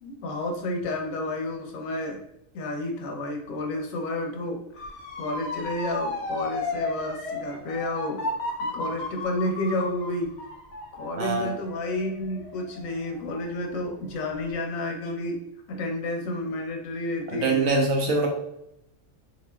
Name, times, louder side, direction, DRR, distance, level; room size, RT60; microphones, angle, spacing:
voice 1, 0.0-2.2 2.5-4.6 5.1-8.3 8.6-10.3 10.9-17.6, left 2 dB, 80° left, 2 dB, 1.1 m, -31 dB
Motor vehicle (road) / Siren, 4.8-13.7 14.1-14.5, left 2 dB, 60° left, 0.8 m, -34 dB
voice 2, 11.2-11.5 17.3-18.3, right 3 dB, 80° right, 1 dB, 1.1 m, -23 dB
3.6 x 2.9 x 2.2 m, 0.81 s
omnidirectional pair, 1.4 m